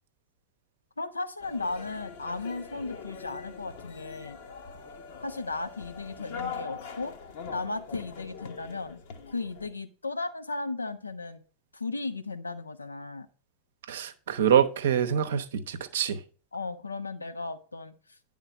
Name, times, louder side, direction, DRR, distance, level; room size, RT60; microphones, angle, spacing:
voice 1, 1.0-4.4 5.2-7.1 7.5-9.0 9.3-11.4 11.7-13.3 16.5-17.9, left 3 dB, 80° left, 0.7 m, -35 dB
sound 1, 1.4-9.7, left 6 dB, 50° left, 1.1 m, -42 dB
voice 2, 13.9-16.2, right 8 dB, 60° right, 0.8 m, -25 dB
9.9 x 3.7 x 5.7 m
figure-of-eight pair, 90°, 0 cm